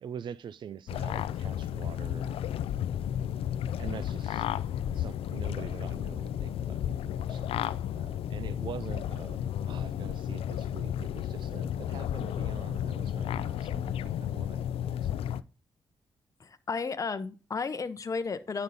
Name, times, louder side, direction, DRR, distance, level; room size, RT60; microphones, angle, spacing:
voice 1, 0.0-2.4 3.8-4.5 4.9-15.3, right 8 dB, 55° right, 15 dB, 0.4 m, -45 dB
sound 1, 0.9-15.4, left 10 dB, 85° left, 0.4 m, -33 dB
voice 2, 16.4-18.6, left 4 dB, 35° left, 10 dB, 0.8 m, -33 dB
9.4 x 5.3 x 4.1 m, 0.34 s
cardioid pair, 85°, 9 cm